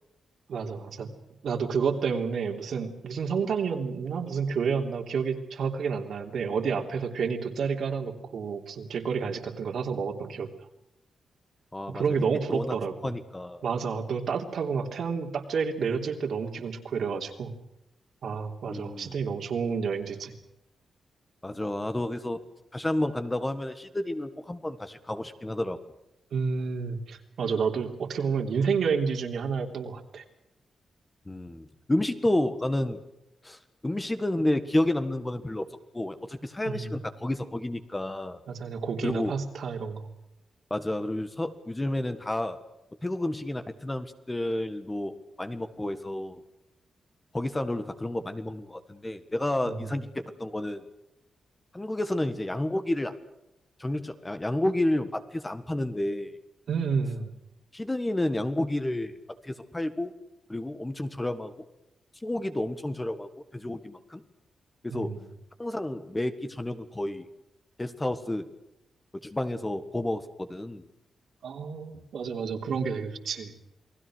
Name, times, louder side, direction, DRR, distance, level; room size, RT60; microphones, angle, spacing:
voice 1, 0.5-1.1 1.4-10.5 11.9-12.9 13.6-17.5 18.2-20.3 26.3-30.2 36.6-36.9 38.5-40.1 49.7-49.8 56.7-57.3 64.9-65.3 71.4-73.5, right 5 dB, 65° right, 4 dB, 3.3 m, -30 dB
voice 2, 11.7-12.0 12.5-12.8 13.0-13.6 18.7-19.1 21.4-22.4 22.7-25.8 31.3-33.0 33.4-35.6 35.9-38.4 39.0-39.3 40.7-42.6 43.0-46.4 47.3-50.8 51.7-53.1 53.8-56.3 57.7-59.1 59.4-60.1 60.5-61.5 62.2-64.2 64.8-65.1 65.6-67.3 67.8-68.5 69.2-70.8, left 1 dB, 10° left, 10 dB, 1.6 m, -30 dB
29.0 x 20.0 x 6.4 m, 0.90 s
wide cardioid pair, 155°, 0 cm